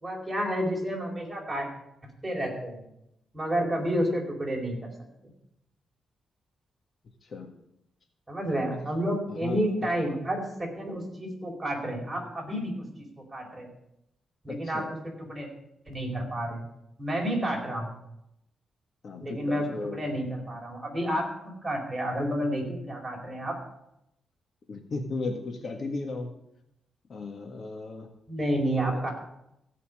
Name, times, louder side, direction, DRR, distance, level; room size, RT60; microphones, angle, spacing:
voice 1, 0.0-1.7 2.2-2.8 3.3-4.8 8.3-12.8 13.3-13.7 14.4-15.5 15.9-16.6 17.0-17.9 19.2-21.2 21.6-23.6 28.3-29.1, equal, 15° right, -1 dB, 4.7 m, -30 dB
voice 2, 9.3-9.9 14.5-14.9 19.0-20.0 24.7-26.3 27.1-28.1 28.9-29.0, left 3 dB, 55° left, 5 dB, 1.6 m, -35 dB
16.0 x 5.6 x 8.7 m, 0.81 s
cardioid pair, 100°, 0 cm